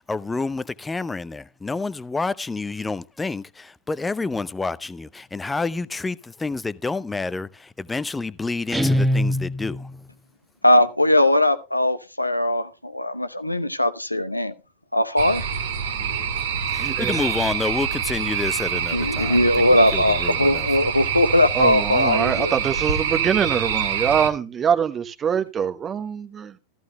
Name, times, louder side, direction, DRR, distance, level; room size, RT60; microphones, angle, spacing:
voice 1, 0.0-9.9 16.7-19.5 19.9-20.7, left 3 dB, 10° left, 0.6 m, -29 dB
Guitar, 8.7-10.0, equal, 5° right, 1.1 m, -22 dB
voice 2, 10.6-14.5 14.9-15.5 18.9-22.6, left 1 dB, 85° left, 0.9 m, -20 dB
sound 1, 15.2-24.3, right 7 dB, 60° right, 1.9 m, -26 dB
voice 3, 16.8-17.2 21.5-26.5, right 7 dB, 25° right, 1.0 m, -24 dB
14.5 x 14.0 x 2.2 m
figure-of-eight pair, 90°, 0 cm